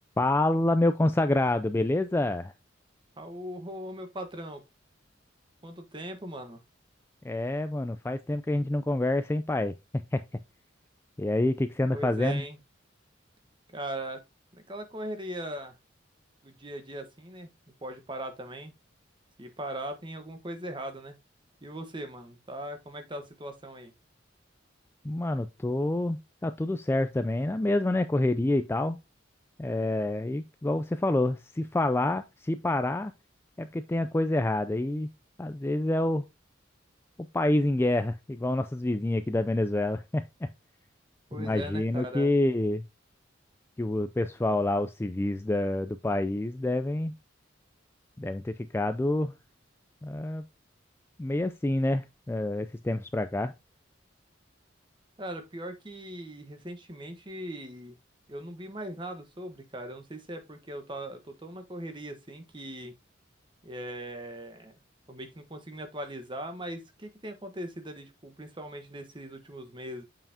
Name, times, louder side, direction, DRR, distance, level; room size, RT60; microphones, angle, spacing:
voice 1, 0.2-2.5 7.2-9.7 10.1-10.2 11.2-12.4 25.0-29.0 29.6-33.1 33.6-35.1 35.4-36.2 37.3-40.5 41.4-42.8 43.8-47.1 48.2-49.3 50.0-50.4 51.2-53.5, left 1 dB, 10° left, 0.3 m, -27 dB
voice 2, 3.2-4.6 5.6-6.6 11.9-12.6 13.7-14.2 14.5-15.8 16.4-17.5 17.8-18.7 19.4-21.2 21.6-23.9 41.3-42.3 55.2-58.0 58.3-62.9 63.6-64.8 65.1-70.0, right 1 dB, 25° right, 1.1 m, -39 dB
7.1 x 5.5 x 2.8 m
head